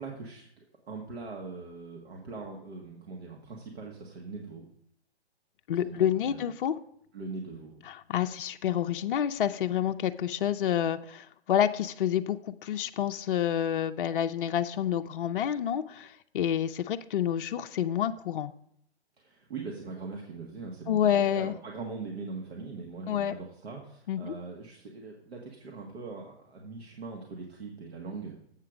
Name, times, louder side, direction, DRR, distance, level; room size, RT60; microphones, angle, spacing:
voice 1, 0.0-4.6 5.8-6.4 7.1-7.8 19.2-28.4, right 4 dB, 65° right, 0 dB, 1.6 m, -41 dB
voice 2, 5.7-6.7 7.9-18.5 20.9-21.5 23.1-23.3 24.1-24.3, left 10 dB, 50° left, 8 dB, 0.5 m, -28 dB
8.0 x 6.5 x 5.0 m, 0.69 s
hypercardioid pair, 140°, 33 cm